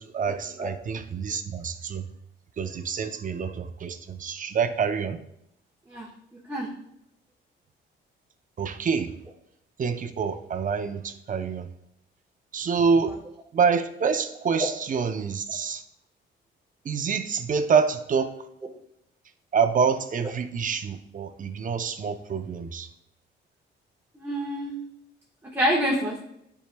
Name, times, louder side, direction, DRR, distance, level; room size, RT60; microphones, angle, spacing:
voice 1, 0.0-2.1 2.6-5.2 8.6-9.1 9.8-11.7 12.5-13.2 13.5-15.8 16.8-18.4 19.5-22.9, right 6 dB, 40° right, 9 dB, 0.6 m, -26 dB
voice 2, 24.1-24.8 25.5-26.2, equal, 10° right, -4 dB, 1.2 m, -26 dB
10.0 x 4.7 x 2.2 m, 0.77 s
cardioid pair, 90°, 20 cm